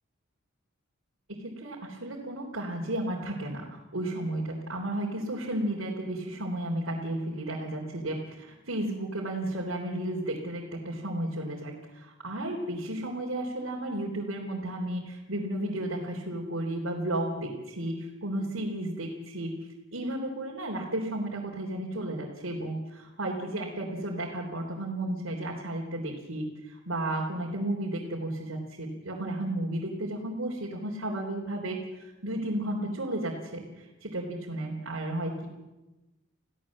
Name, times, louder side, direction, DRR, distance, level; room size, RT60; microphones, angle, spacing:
voice 1, 1.4-19.5 19.9-35.5, right 1 dB, 75° right, -2 dB, 3.8 m, -33 dB
28.5 x 16.5 x 7.6 m, 1.1 s
head